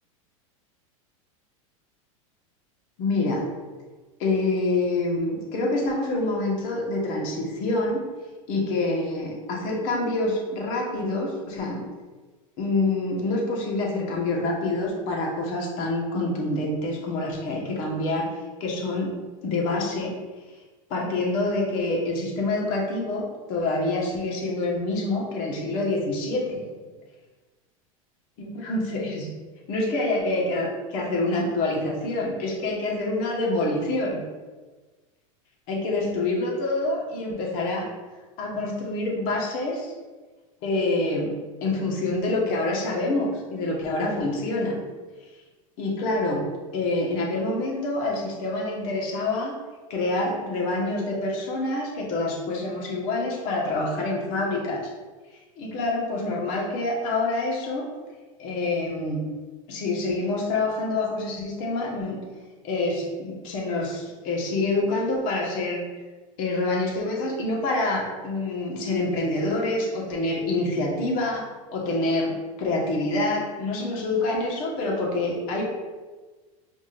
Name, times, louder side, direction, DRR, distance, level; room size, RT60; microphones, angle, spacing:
voice 1, 3.0-3.5 4.2-8.0 8.5-11.8 12.6-18.3 18.6-19.1 19.4-20.1 20.9-26.6 28.4-29.3 29.7-34.2 35.7-37.9 38.4-39.9 40.6-41.3 41.6-44.8 45.8-49.5 49.9-54.9 55.6-57.9 58.4-59.2 59.7-62.2 62.6-65.8 66.4-75.6, left 2 dB, 55° left, -2 dB, 1.4 m, -26 dB
5.1 x 3.7 x 2.5 m, 1.3 s
supercardioid pair, 120°, 18 cm